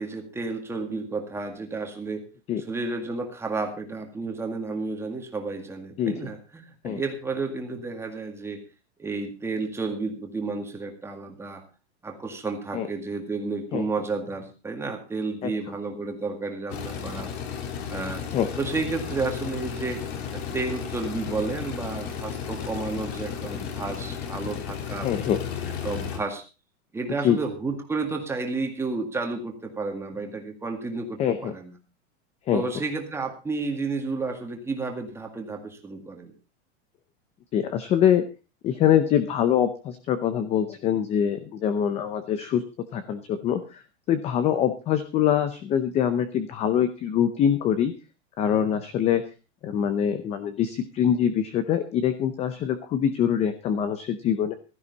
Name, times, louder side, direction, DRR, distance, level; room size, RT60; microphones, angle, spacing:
voice 1, 0.0-2.2 2.7-8.6 9.0-11.6 12.0-17.3 17.9-18.2 18.6-20.0 20.3-25.1 25.8-26.4 26.9-31.8 32.5-36.3, right 3 dB, 5° right, 3 dB, 1.9 m, -31 dB
sound 1, 16.7-26.2, left 7 dB, 60° left, 3.5 m, -34 dB
voice 2, 25.0-25.4 27.2-27.4 31.2-31.5 32.5-32.6 37.5-38.2 38.6-42.6 42.9-43.8 44.1-47.9 48.4-49.2 49.6-54.5, left 9 dB, 20° left, 11 dB, 0.6 m, -24 dB
16.0 x 13.0 x 4.0 m, 0.32 s
supercardioid pair, 170°, 36 cm